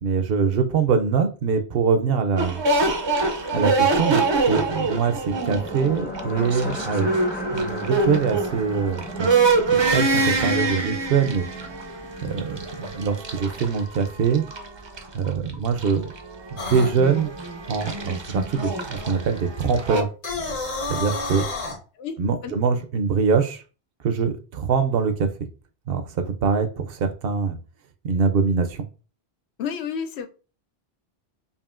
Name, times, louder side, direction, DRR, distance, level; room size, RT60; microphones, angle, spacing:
voice 1, 0.0-2.6 3.5-3.7 4.0-7.2 7.5-9.3 9.9-11.4 12.2-14.4 15.1-16.1 16.7-17.3 17.7-20.1 20.9-21.4 22.2-23.6 24.0-25.3 25.9-27.6 28.0-28.8, right 5 dB, 70° right, 0.8 m, -23 dB
sound 1, 2.4-20.0, right 3 dB, 40° right, 0.4 m, -25 dB
voice 2, 3.5-3.9 21.9-22.6 29.6-30.3, left 7 dB, 90° left, 0.8 m, -32 dB
sound 2, 5.3-13.3, equal, 10° left, 0.6 m, -36 dB
sound 3, 16.6-16.9 20.1-21.8, left 3 dB, 55° left, 1.3 m, -29 dB
5.4 x 2.5 x 2.4 m
omnidirectional pair, 1.1 m